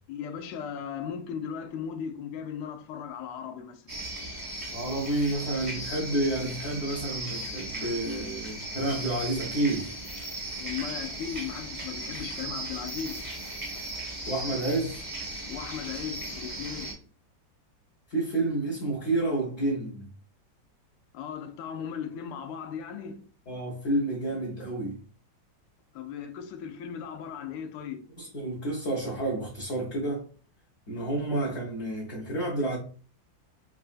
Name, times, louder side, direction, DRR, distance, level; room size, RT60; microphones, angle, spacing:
voice 1, 0.1-4.0 10.6-13.3 15.5-17.0 21.1-23.3 25.9-28.1, left 8 dB, 75° left, 1.2 m, -37 dB
sound 1, 3.9-16.9, right 2 dB, 30° right, 0.6 m, -37 dB
voice 2, 4.7-9.9 14.3-15.0 18.1-20.1 23.5-25.0 28.2-30.3 30.9-32.8, right 1 dB, 55° left, 0.8 m, -30 dB
3.8 x 2.4 x 2.4 m
omnidirectional pair, 2.0 m